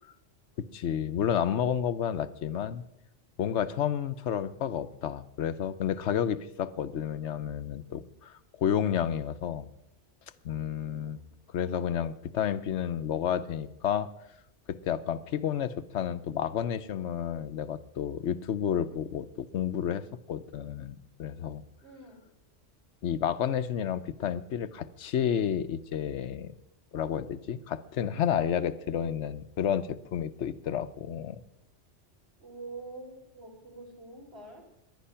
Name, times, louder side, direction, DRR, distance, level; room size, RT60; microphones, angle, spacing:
voice 1, 0.6-2.8 3.4-9.7 10.4-11.2 11.5-14.1 14.7-21.6 23.0-26.5 26.9-31.4, left 9 dB, 80° left, 12 dB, 1.0 m, -31 dB
voice 2, 10.8-11.3 21.8-22.2 32.4-34.6, right 3 dB, 60° right, 0 dB, 4.2 m, -46 dB
19.0 x 11.0 x 5.7 m, 0.82 s
omnidirectional pair, 1.2 m